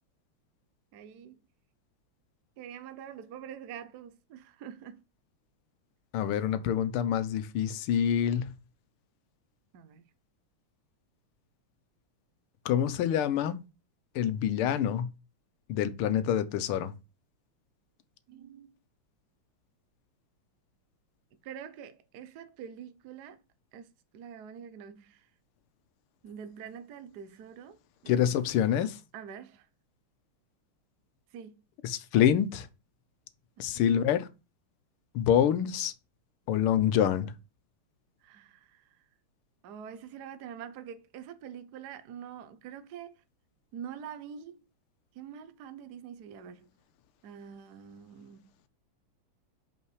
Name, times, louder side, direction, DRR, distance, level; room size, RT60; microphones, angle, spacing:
voice 1, 0.9-1.4 2.6-5.0 9.7-10.0 18.3-18.7 21.4-23.4 23.7-23.9 24.1-25.3 26.2-28.2 29.1-29.7 31.3-31.6 33.6-33.9 38.2-38.9 39.6-43.2 43.7-44.6 45.1-46.7 47.2-48.5, right 8 dB, 60° right, 1.2 m, -45 dB
voice 2, 6.1-8.5 12.6-13.6 14.1-15.1 15.7-16.9 28.1-29.0 31.8-32.7 33.6-34.3 35.1-35.9 36.5-37.3, left 9 dB, 85° left, 1.6 m, -26 dB
5.6 x 5.1 x 4.7 m
omnidirectional pair, 2.4 m